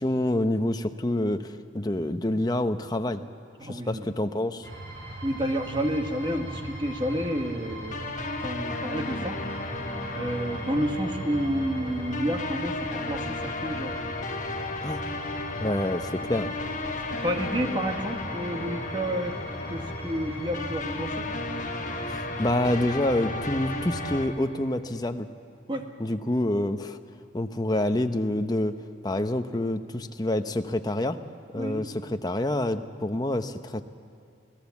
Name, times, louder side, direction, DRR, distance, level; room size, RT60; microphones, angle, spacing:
voice 1, 0.0-3.2 3.6-4.7 14.8-15.0 15.6-16.5 22.1-25.3 26.0-27.0 27.3-28.7 29.0-31.2 31.5-33.8, left 1 dB, 20° left, 7 dB, 0.8 m, -27 dB
voice 2, 3.6-4.1 5.2-8.1 8.4-9.4 10.2-13.9 16.2-16.3 17.1-19.3 19.7-21.2 25.7-25.8 31.6-32.0, equal, 25° right, 4 dB, 1.6 m, -30 dB
sound 1, 4.6-24.3, right 1 dB, 90° right, 6.7 m, -39 dB
sound 2, 7.9-24.3, left 2 dB, 40° left, 1.2 m, -34 dB
26.5 x 17.0 x 7.2 m, 2.6 s
head